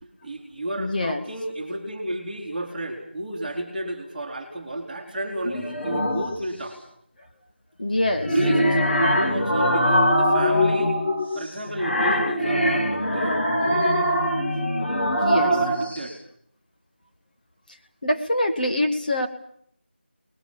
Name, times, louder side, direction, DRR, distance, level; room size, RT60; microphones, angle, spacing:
voice 1, 0.0-6.8 8.3-10.9 11.3-13.4 15.3-16.2, right 1 dB, 5° right, -9 dB, 3.0 m, -32 dB
voice 2, 0.8-1.2 7.8-8.4 15.2-15.6 18.0-19.3, left 1 dB, 50° left, 5 dB, 1.9 m, -24 dB
sound 1, 5.4-6.4 8.0-16.0, equal, 75° left, 3.5 m, -22 dB
29.0 x 21.0 x 7.1 m, 0.66 s
figure-of-eight pair, 170°, 6 cm